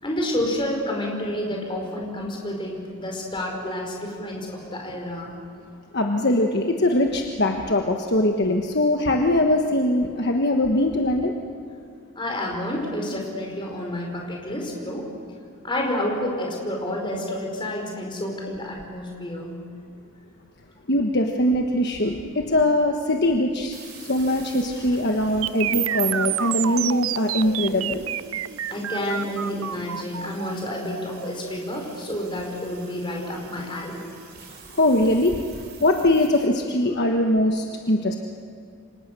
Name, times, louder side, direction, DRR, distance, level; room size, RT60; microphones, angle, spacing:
voice 1, 0.0-5.4 12.2-15.1 15.6-19.6 28.7-34.1, left 1 dB, 20° left, 0 dB, 5.1 m, -29 dB
voice 2, 5.9-11.3 20.9-28.1 34.5-35.4 35.8-38.2, left 1 dB, 50° left, 3 dB, 1.4 m, -22 dB
sound 1, 23.7-36.5, right 6 dB, 45° right, 4.4 m, -48 dB
sound 2, 25.4-33.4, right 11 dB, 65° right, 0.6 m, -29 dB
29.0 x 25.0 x 6.9 m, 2.4 s
head